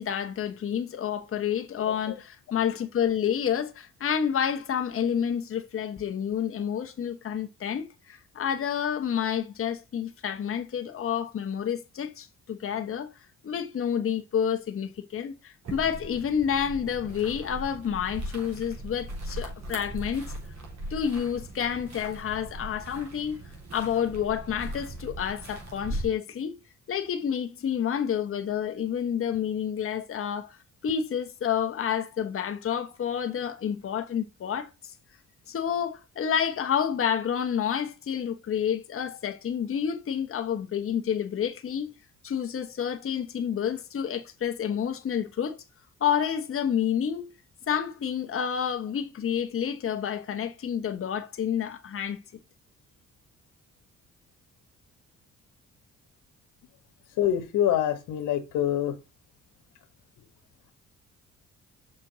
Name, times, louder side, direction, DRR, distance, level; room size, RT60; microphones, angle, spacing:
voice 1, 0.0-13.1 13.4-20.3 20.9-23.4 23.7-26.6 26.9-30.6 30.8-34.9 35.5-41.9 42.2-45.6 46.0-47.3 47.7-52.2, left 8 dB, 45° left, 1.1 m, -29 dB
sound 1, 15.6-26.1, right 1 dB, 60° right, 3.5 m, -39 dB
voice 2, 57.2-59.0, left 11 dB, 90° left, 1.3 m, -25 dB
6.2 x 5.6 x 4.0 m
cardioid pair, 90°, 30 cm